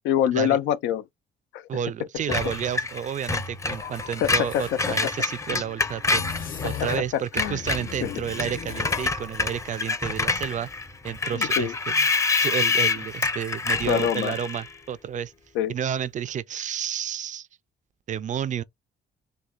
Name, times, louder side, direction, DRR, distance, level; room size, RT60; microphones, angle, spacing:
voice 1, 0.0-1.0 1.5-1.7 4.2-4.9 6.8-7.6 8.0-8.1 11.3-11.7 13.9-14.3 15.5-15.7, left 10 dB, 90° left, 0.6 m, -25 dB
voice 2, 1.7-6.2 6.6-10.7 11.0-12.1 12.4-15.3 15.7-17.5 18.1-18.6, right 9 dB, 40° right, 0.4 m, -31 dB
Screech, 2.3-7.0 7.3-14.7, left 4 dB, 15° left, 0.6 m, -27 dB
sound 1, 3.7-5.1 6.0-7.2 7.4-9.2, left 7 dB, 50° left, 0.9 m, -37 dB
6.3 x 2.2 x 2.3 m
cardioid pair, 105°, 19 cm